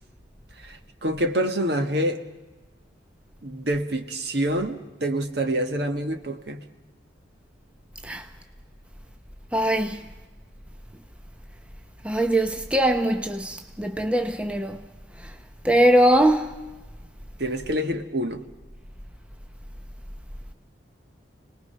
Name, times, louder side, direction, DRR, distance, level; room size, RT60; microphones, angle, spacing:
voice 1, 0.6-2.2 3.4-6.6 17.4-18.4, right 1 dB, 55° right, 1.7 m, -27 dB
voice 2, 9.5-10.0 12.0-14.8 15.2-15.3 15.6-16.6, right 1 dB, 5° right, 0.7 m, -21 dB
28.5 x 19.5 x 5.8 m
head